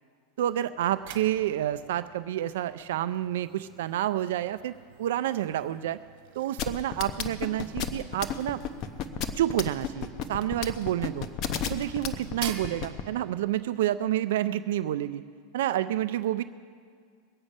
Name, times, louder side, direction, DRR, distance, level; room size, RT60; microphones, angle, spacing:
voice 1, 0.4-4.7 5.0-6.0 6.4-8.6 9.4-11.3 11.7-15.2 15.5-16.4, right 12 dB, 75° right, 13 dB, 0.4 m, -29 dB
sound 1, 0.7-13.7, right 9 dB, 60° right, 1.5 m, -48 dB
sound 2, 6.6-13.0, left 8 dB, 40° left, 0.9 m, -31 dB
22.0 x 8.8 x 5.4 m, 2.1 s
supercardioid pair, 150°, 0 cm